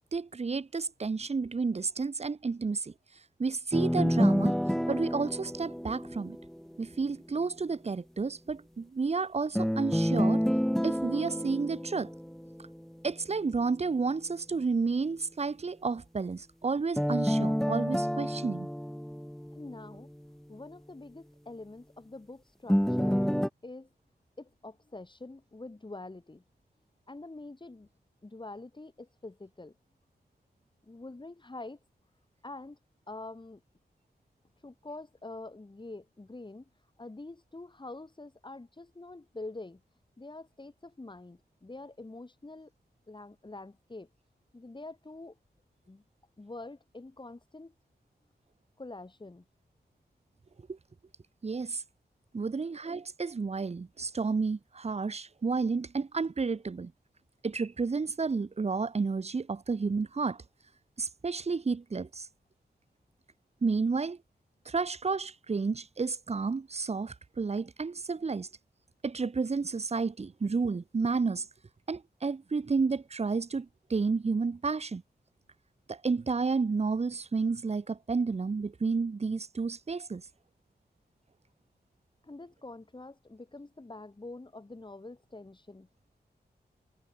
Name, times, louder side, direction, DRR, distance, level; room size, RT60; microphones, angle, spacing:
voice 1, 0.1-2.9 3.4-4.6 4.9-6.4 6.8-10.4 10.8-12.1 13.0-18.7 50.7-50.8 51.4-51.8 52.3-56.9 57.4-60.4 61.0-62.3 63.6-64.2 64.7-68.5 69.0-71.5 71.9-75.0 75.9-80.2, right 4 dB, 40° right, 0.8 m, -31 dB
sound 1, 3.7-6.8 9.5-12.8 17.0-20.0 22.7-23.5, equal, ahead, 1.9 m, -29 dB
voice 2, 19.5-20.1 20.5-23.2 23.6-23.9 24.4-26.4 27.1-27.9 28.2-29.7 30.8-31.8 32.4-32.8 33.1-33.6 34.6-36.7 37.0-39.8 40.2-42.7 43.1-44.1 44.5-45.4 45.9-46.0 46.4-47.7 48.8-49.4 82.2-85.9, left 2 dB, 25° left, 6.7 m, -45 dB
wide cardioid pair, 105°, 17 cm